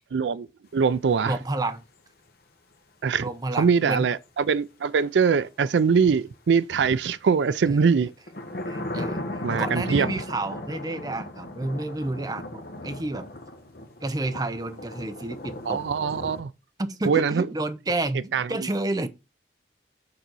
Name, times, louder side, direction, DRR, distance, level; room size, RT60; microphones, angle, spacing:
voice 1, 0.1-0.5 0.7-1.3 3.0-3.3 3.6-8.1 9.4-10.1 15.7-16.5 17.1-17.5 18.3-18.7, right 6 dB, 85° right, 0.4 m, -22 dB
voice 2, 1.2-1.8 3.2-4.1 7.7-7.9 8.7-13.3 14.0-15.8 16.8-19.1, right 2 dB, 20° right, 0.6 m, -30 dB
sound 1, 3.6-3.8 5.3-5.4 5.8-5.9 6.9-7.2 8.3-16.4, left 1 dB, 55° left, 1.1 m, -36 dB
6.6 x 4.0 x 6.1 m
head